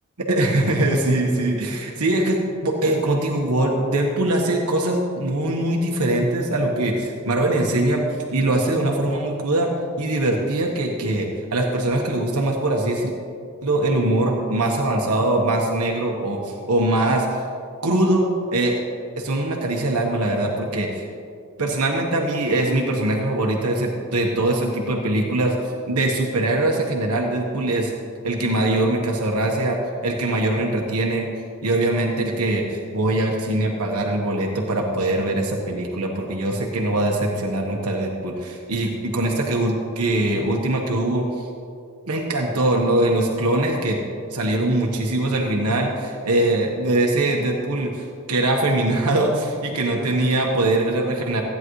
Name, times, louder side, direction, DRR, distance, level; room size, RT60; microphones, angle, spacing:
voice 1, 0.2-8.0 8.3-9.7 10.0-13.1 13.6-17.3 17.8-18.8 19.2-21.0 21.6-25.6 25.9-27.9 28.2-29.8 30.0-31.3 31.6-41.3 42.1-44.0 44.3-51.4, right 1 dB, 90° right, 0 dB, 1.3 m, -22 dB
15.0 x 9.6 x 3.2 m, 2.3 s
head